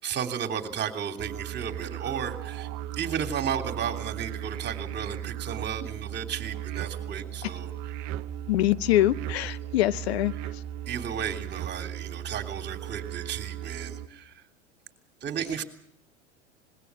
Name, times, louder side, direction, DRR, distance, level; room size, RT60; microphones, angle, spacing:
voice 1, 0.0-8.1 10.9-14.4 15.2-15.6, right 8 dB, 30° right, 3.3 m, -34 dB
sound 1, 1.2-14.1, right 11 dB, 45° right, 1.0 m, -37 dB
voice 2, 8.5-10.3, left 14 dB, 60° left, 0.9 m, -24 dB
26.0 x 21.5 x 6.2 m
figure-of-eight pair, 85°, 37 cm